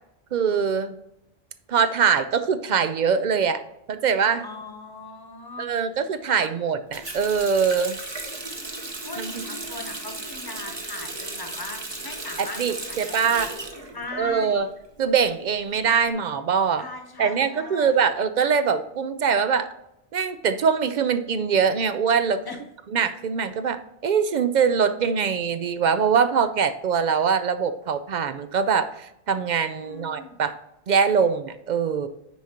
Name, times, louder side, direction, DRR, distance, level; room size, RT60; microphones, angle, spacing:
voice 1, 0.3-1.0 1.7-3.6 3.9-4.4 5.6-8.0 9.2-9.4 12.4-13.5 14.1-14.7 15.0-16.8 17.2-19.7 20.1-22.4 22.9-30.5 30.9-32.1, right 6 dB, 55° right, 11 dB, 0.5 m, -23 dB
voice 2, 4.4-5.7 6.2-6.4 9.0-13.5 13.9-14.7 16.8-18.1 22.4-22.6 29.8-30.4, left 3 dB, 20° left, 4 dB, 1.0 m, -39 dB
Water tap faucet, 6.9-14.7 15.0-16.0, right 2 dB, 25° right, 0.9 m, -35 dB
9.3 x 4.9 x 2.8 m, 0.85 s
omnidirectional pair, 1.1 m